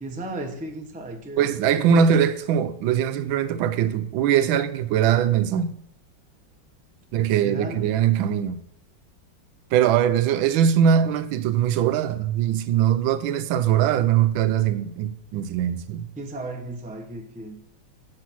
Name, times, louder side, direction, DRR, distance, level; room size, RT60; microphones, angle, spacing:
voice 1, 0.0-2.1 7.4-7.8 16.2-17.6, right 2 dB, 10° right, 0.5 m, -35 dB
voice 2, 1.4-5.8 7.1-8.6 9.7-16.1, right 9 dB, 85° right, 1.4 m, -21 dB
8.8 x 5.7 x 6.1 m
omnidirectional pair, 2.1 m